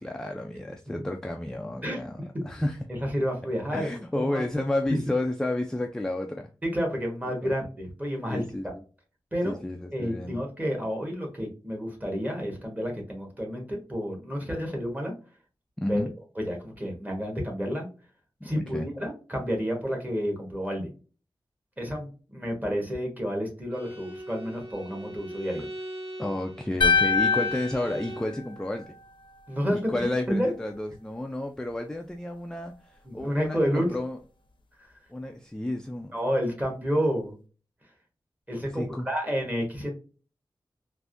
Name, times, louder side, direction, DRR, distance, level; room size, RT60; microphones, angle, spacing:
voice 1, 0.0-2.8 3.7-6.5 7.4-7.5 8.3-8.8 9.4-10.4 15.8-16.1 18.5-18.9 26.2-28.9 29.7-34.2 35.1-36.1 38.7-39.1, left 1 dB, 5° left, 4 dB, 0.3 m, -31 dB
voice 2, 2.9-4.4 4.9-5.0 6.6-8.4 9.3-9.6 9.9-15.1 15.9-16.0 16.4-17.9 18.4-20.9 21.8-25.6 29.5-30.5 33.0-33.9 36.1-37.4 38.5-39.9, equal, 20° right, 1 dB, 1.2 m, -30 dB
Bowed string instrument, 23.7-28.4, right 1 dB, 85° right, 1.0 m, -40 dB
sound 1, 26.8-29.1, left 5 dB, 70° left, 0.6 m, -25 dB
3.4 x 2.6 x 2.5 m, 0.35 s
wide cardioid pair, 115°, 9 cm